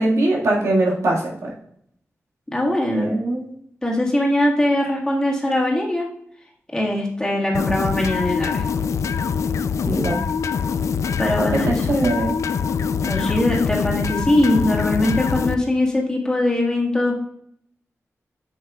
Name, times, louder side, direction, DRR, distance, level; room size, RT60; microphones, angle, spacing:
voice 1, 0.0-1.5 2.9-3.5 9.9-10.2 11.4-12.4, right 2 dB, 85° right, -3 dB, 1.8 m, -21 dB
voice 2, 2.5-3.1 3.8-6.1 6.7-8.6 11.2-12.1 13.0-17.2, left 1 dB, 15° left, -3 dB, 1.8 m, -21 dB
sound 1, 7.5-15.6, left 6 dB, 85° left, 0.3 m, -24 dB
7.7 x 6.4 x 2.4 m, 0.70 s
wide cardioid pair, 115°, 5 cm